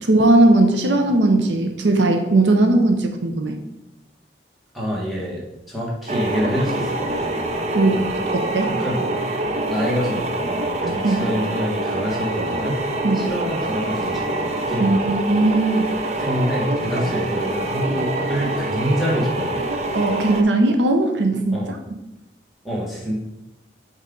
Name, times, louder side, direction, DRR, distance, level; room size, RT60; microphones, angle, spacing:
voice 1, 0.0-3.6 7.7-8.7 11.0-11.2 13.0-13.3 14.8-15.9 19.9-21.8, right 2 dB, 85° right, 4 dB, 0.7 m, -18 dB
voice 2, 4.7-7.5 8.6-9.1 9.7-12.8 13.1-14.9 16.2-19.6 21.5-21.7 22.6-23.2, equal, ahead, -6 dB, 1.5 m, -26 dB
sound 1, 6.1-20.4, right 1 dB, 40° right, 0.5 m, -25 dB
5.3 x 4.9 x 3.8 m, 0.90 s
head